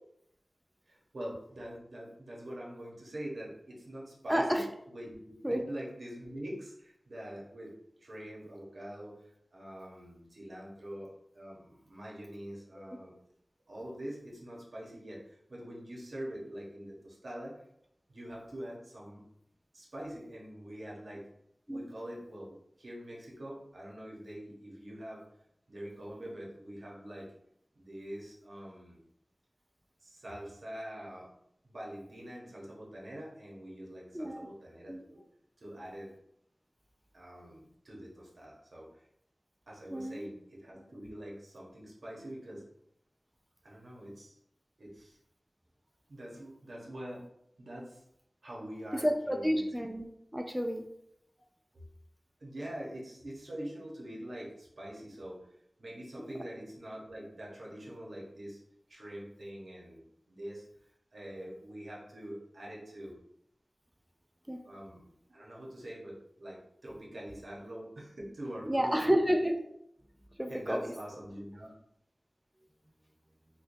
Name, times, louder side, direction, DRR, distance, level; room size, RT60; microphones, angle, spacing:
voice 1, 0.9-4.6 4.9-7.7 8.0-9.2 9.5-13.1 13.7-17.6 18.1-19.2 19.7-21.3 21.7-25.2 25.7-27.3 27.7-29.0 30.0-31.3 31.6-35.2 35.6-36.1 37.1-38.9 39.7-42.6 43.6-44.4 44.8-45.2 46.1-47.2 47.6-48.0 48.4-49.6 51.7-51.8 52.4-55.4 55.8-58.6 58.9-60.6 61.1-63.1 64.6-65.0 65.3-69.1 70.5-71.7, equal, 70° right, -4 dB, 1.0 m, -44 dB
voice 2, 4.3-4.6 5.4-5.6 12.8-13.0 21.7-21.8 34.1-34.5 34.9-35.0 39.9-40.3 48.9-50.1 50.3-50.9 64.5-64.6 68.7-69.5 70.4-70.9, equal, 10° right, 4 dB, 0.3 m, -30 dB
4.4 x 2.3 x 2.6 m, 0.76 s
wide cardioid pair, 65°, 0 cm